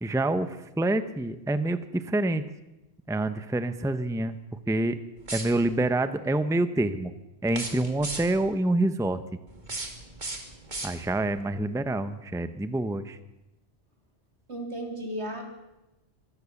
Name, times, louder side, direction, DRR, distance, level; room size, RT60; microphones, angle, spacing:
voice 1, 0.0-2.4 3.1-4.4 4.7-5.0 5.3-7.1 7.4-9.2 10.8-13.2, right 2 dB, 5° right, 11 dB, 0.8 m, -27 dB
sound 1, 5.2-5.9 7.4-8.5 9.5-11.3, right 2 dB, 45° right, 2.5 m, -37 dB
voice 2, 14.5-15.4, right 1 dB, 80° right, 2 dB, 3.9 m, -34 dB
24.5 x 15.5 x 7.2 m, 0.96 s
omnidirectional pair, 1.1 m